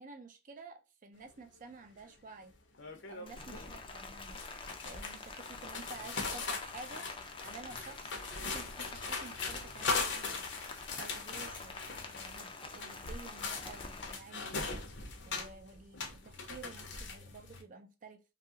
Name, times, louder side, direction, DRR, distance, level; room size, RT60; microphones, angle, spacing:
voice 1, 0.0-2.6 3.1-4.4 4.8-7.1 7.4-10.4 11.0-14.8 15.2-18.2, right 3 dB, 45° right, 0.5 m, -51 dB
sound 1, 1.7-1.8 2.1-2.3 2.8-3.7 4.0-17.6, left 4 dB, 65° left, 0.7 m, -40 dB
Rain, 3.3-14.2, left 4 dB, 25° left, 0.4 m, -47 dB
2.7 x 2.3 x 2.7 m
head